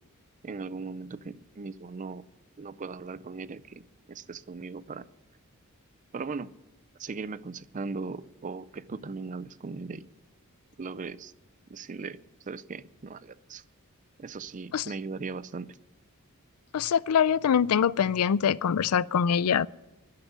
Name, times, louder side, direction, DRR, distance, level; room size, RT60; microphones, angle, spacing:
voice 1, 0.4-2.2 2.6-5.1 6.1-6.5 7.0-10.1 10.8-11.3 11.7-12.2 12.5-13.6 14.2-15.8, right 4 dB, 35° right, 0.5 m, -38 dB
voice 2, 16.7-19.7, left 7 dB, 85° left, 0.4 m, -24 dB
12.5 x 10.5 x 9.5 m
head